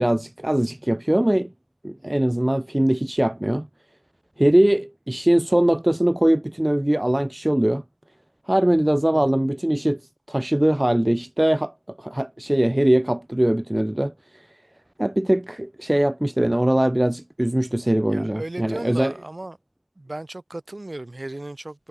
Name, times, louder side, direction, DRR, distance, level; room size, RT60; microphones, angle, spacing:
voice 1, 0.0-1.5 1.8-3.7 4.4-7.8 8.5-10.0 10.3-11.7 12.0-14.1 15.0-19.1, right 1 dB, 25° right, 0.3 m, -21 dB
voice 2, 18.0-19.6 20.0-21.9, right 2 dB, 55° right, 2.0 m, -35 dB
wide cardioid pair, 40°, 0 cm